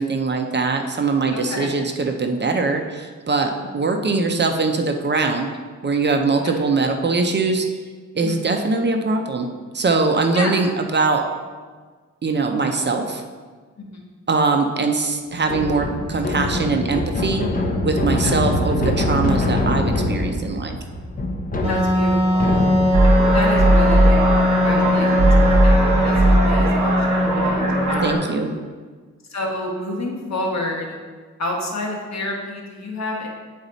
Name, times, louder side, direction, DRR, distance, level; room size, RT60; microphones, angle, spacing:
voice 1, 0.0-5.5 5.8-7.7 8.1-9.5 9.7-11.2 12.2-13.2 14.3-17.4 17.8-20.8 28.0-28.6, right 3 dB, 35° right, 4 dB, 0.5 m, -22 dB
voice 2, 1.3-1.8 3.6-3.9 6.4-6.6 8.2-8.5 10.3-10.5 13.8-13.9 18.2-18.4 21.7-22.6 23.3-28.2 29.3-31.0 31.4-33.3, left 2 dB, 60° left, 0 dB, 1.2 m, -29 dB
sound 1, 15.4-23.2, left 2 dB, 30° left, 0.7 m, -24 dB
Wind instrument woodwind instrument, 21.6-28.1, left 1 dB, 20° right, 1.5 m, -20 dB
sound 2, 22.9-28.1, right 1 dB, 70° right, 1.3 m, -18 dB
8.6 x 4.1 x 3.9 m, 1.5 s
wide cardioid pair, 140°, 30 cm